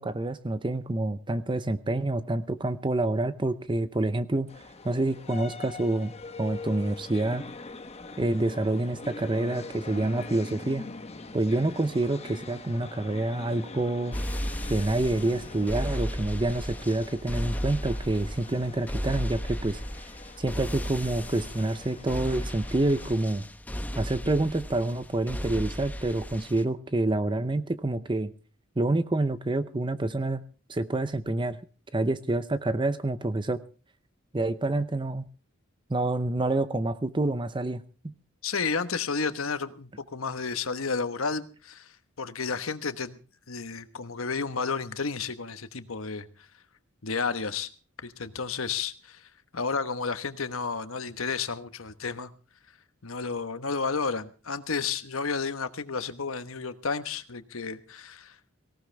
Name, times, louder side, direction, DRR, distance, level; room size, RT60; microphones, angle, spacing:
voice 1, 0.0-4.5 4.8-6.1 6.4-7.4 8.2-10.9 11.3-14.2 14.7-19.8 20.4-23.4 24.0-28.3 28.8-30.4 30.7-31.6 31.9-33.6 34.3-35.2 35.9-37.8 38.0-38.1, right 2 dB, 25° right, 0.6 m, -27 dB
sound 1, 4.5-23.2, left 3 dB, 30° left, 1.1 m, -43 dB
sound 2, 14.1-26.6, equal, 10° left, 0.9 m, -35 dB
voice 2, 38.4-43.2 43.5-46.3 47.0-47.7 48.0-52.3 53.0-58.4, left 5 dB, 75° left, 1.2 m, -32 dB
18.5 x 18.0 x 3.4 m
head